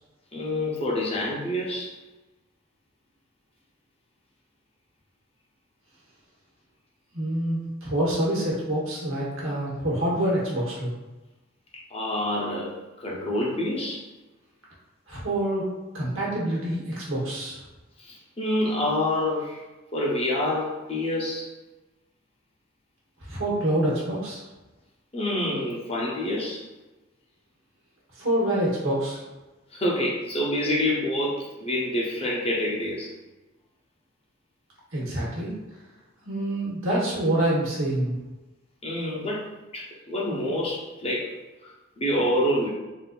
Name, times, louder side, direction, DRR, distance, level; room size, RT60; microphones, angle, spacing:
voice 1, 0.3-1.9 11.9-12.7 13.0-14.0 18.0-19.6 19.9-21.5 25.1-26.6 29.7-33.1 38.8-39.5 39.7-41.3 42.0-42.7, left 1 dB, 30° left, -4 dB, 0.6 m, -27 dB
voice 2, 7.1-10.9 15.1-15.7 15.9-17.6 23.2-24.4 28.1-29.2 34.9-35.5 36.2-38.1, right 1 dB, 75° right, -6 dB, 1.2 m, -26 dB
3.6 x 2.6 x 2.4 m, 1.1 s
head